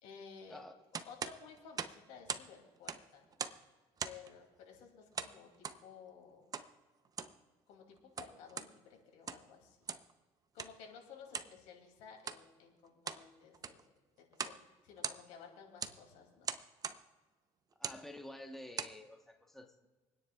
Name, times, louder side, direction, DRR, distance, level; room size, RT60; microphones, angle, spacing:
voice 1, 0.0-0.6 1.0-3.2 4.0-6.5 7.7-9.8 10.5-13.9 14.3-16.5, left 6 dB, 80° left, 2 dB, 2.6 m, -55 dB
sound 1, 0.9-2.5 2.8-3.7 4.0-4.3 5.2-5.8 6.5-6.7 7.1-7.4 8.0-8.7 9.1-9.5 9.9-10.1 10.6-10.8 11.3-11.5 12.2-12.4 12.8-13.3 13.5-13.9 14.3-14.6 14.9-15.4 15.8-16.0 16.4-17.0 17.7-18.0 18.5-19.0, right 6 dB, 30° right, 0.7 m, -41 dB
voice 2, 17.8-19.9, left 1 dB, 5° left, 4 dB, 1.1 m, -50 dB
28.5 x 9.8 x 2.3 m, 1.4 s
cardioid pair, 115°, 12 cm